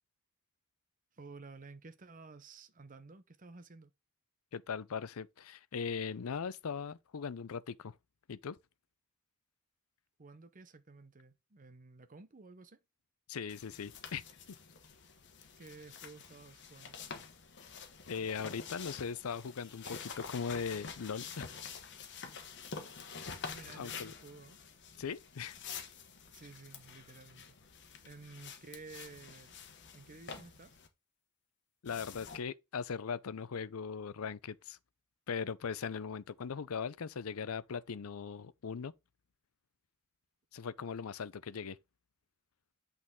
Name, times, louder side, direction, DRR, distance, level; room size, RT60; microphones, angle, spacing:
voice 1, 1.1-3.9 10.2-12.8 15.6-17.0 23.5-24.6 26.2-27.6 28.0-29.6 29.9-30.8, right 3 dB, 35° right, 0.8 m, -53 dB
voice 2, 4.5-8.0 8.3-8.6 13.3-14.2 14.5-14.6 18.1-21.5 23.8-24.1 25.0-25.6 31.8-34.8 35.3-38.9 40.5-41.8, left 6 dB, 75° left, 0.5 m, -39 dB
sound 1, 13.5-30.9 31.9-32.4, left 5 dB, 55° left, 1.3 m, -48 dB
8.4 x 4.1 x 3.7 m
head